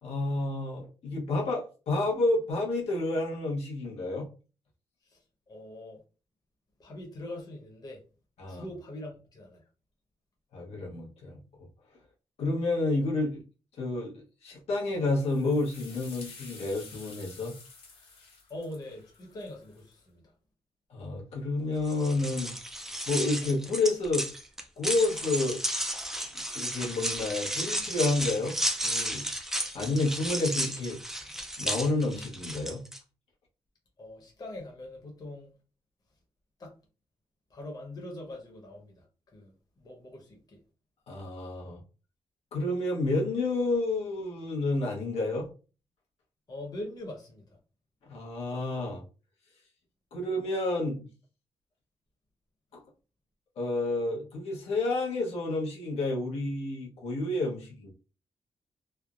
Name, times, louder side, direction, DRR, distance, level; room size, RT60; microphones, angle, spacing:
voice 1, 0.0-4.3 8.4-8.7 10.5-11.4 12.4-13.4 13.8-14.1 14.4-17.5 20.9-22.5 23.1-24.3 24.8-25.6 26.5-29.2 29.7-31.0 31.6-32.8 41.1-41.8 42.5-45.5 48.1-49.0 50.1-51.1 52.7-52.8 53.6-57.9, left 2 dB, 90° left, 1.0 m, -30 dB
voice 2, 5.5-6.0 6.8-8.0 8.5-9.6 18.5-20.2 34.0-35.5 36.6-36.7 37.5-39.1 39.3-40.6 46.5-47.6, left 1 dB, 40° left, 0.9 m, -42 dB
sound 1, 15.1-19.9, left 4 dB, 70° left, 1.2 m, -50 dB
sound 2, 21.8-33.0, right 1 dB, 5° right, 0.4 m, -33 dB
3.2 x 2.0 x 2.4 m
wide cardioid pair, 135°, 10 cm